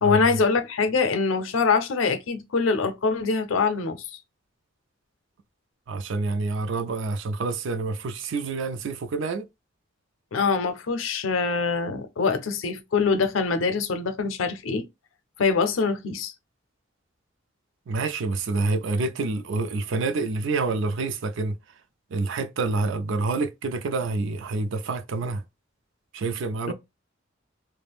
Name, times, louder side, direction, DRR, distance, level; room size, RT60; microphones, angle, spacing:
voice 1, 0.0-4.2 10.3-14.9 15.4-16.3 26.7-26.8, left 4 dB, 80° left, 0.5 m, -24 dB
voice 2, 5.9-9.4 17.9-21.6 22.1-25.4 26.1-26.7, right 3 dB, 70° right, 0.4 m, -27 dB
2.4 x 2.1 x 3.3 m
head